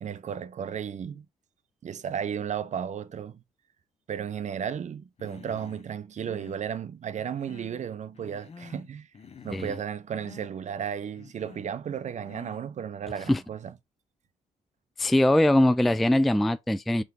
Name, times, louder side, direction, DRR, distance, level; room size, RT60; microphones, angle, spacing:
voice 1, 0.0-1.3 1.8-3.4 4.1-9.1 9.4-13.7, right 8 dB, 45° right, 0.6 m, -34 dB
Human voice, 5.2-5.9 6.2-6.6 7.1-7.9 8.1-8.9 9.1-9.9 10.2-10.5 11.1-11.7 12.2-12.7, left 5 dB, 40° left, 0.8 m, -48 dB
voice 2, 15.0-17.0, left 1 dB, ahead, 0.3 m, -22 dB
3.7 x 3.5 x 3.4 m
hypercardioid pair, 55°, 17 cm